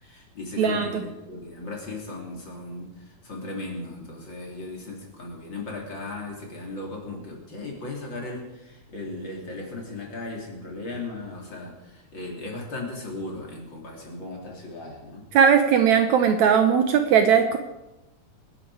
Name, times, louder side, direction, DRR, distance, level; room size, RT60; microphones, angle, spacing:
voice 1, 0.0-15.3, left 2 dB, 35° left, -1 dB, 3.4 m, -37 dB
voice 2, 0.6-1.0 15.3-17.6, right 7 dB, 70° right, 6 dB, 2.0 m, -19 dB
26.0 x 10.0 x 4.8 m, 0.98 s
omnidirectional pair, 3.8 m